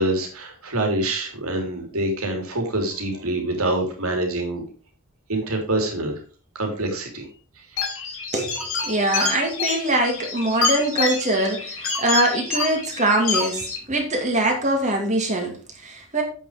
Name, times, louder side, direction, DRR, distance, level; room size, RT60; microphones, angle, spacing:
voice 1, 0.0-4.7 5.3-6.2 6.5-7.3, right 1 dB, 75° right, 3.2 m, -25 dB
sound 1, 7.8-13.8, left 4 dB, 65° left, 3.6 m, -27 dB
voice 2, 8.3-16.2, right 1 dB, 30° right, 2.4 m, -23 dB
8.5 x 6.5 x 5.0 m
head